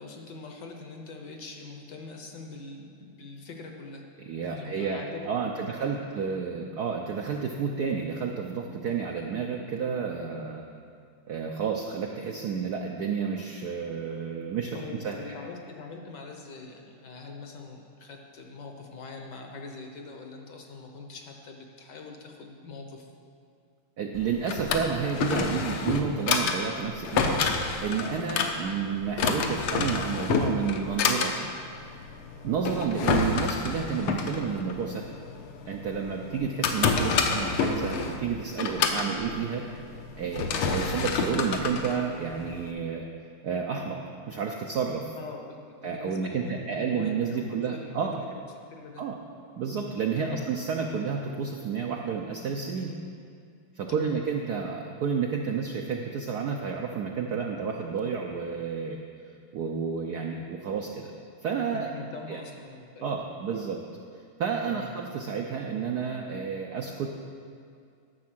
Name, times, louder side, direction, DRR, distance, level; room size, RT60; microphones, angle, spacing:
voice 1, 0.0-4.0 4.4-6.1 14.7-23.1 45.1-48.4 48.7-49.0 50.2-50.5 53.9-54.2 61.7-63.2 63.5-63.6 64.7-64.9, left 3 dB, 60° left, 2 dB, 1.4 m, -43 dB
voice 2, 4.2-10.6 11.3-14.8 15.0-15.3 24.0-27.4 27.8-31.5 32.4-35.1 35.7-39.6 40.2-43.1 43.4-44.0 44.3-45.1 45.8-48.3 49.0-49.2 49.6-52.9 53.7-59.0 59.5-61.1 61.4-61.9 62.3-62.4 63.0-63.8 64.4-67.1, right 6 dB, 75° right, 2 dB, 0.9 m, -30 dB
Drawer open or close, 24.1-42.7, left 5 dB, 75° left, 1.6 m, -29 dB
11.0 x 7.3 x 6.0 m, 2.3 s
omnidirectional pair, 2.4 m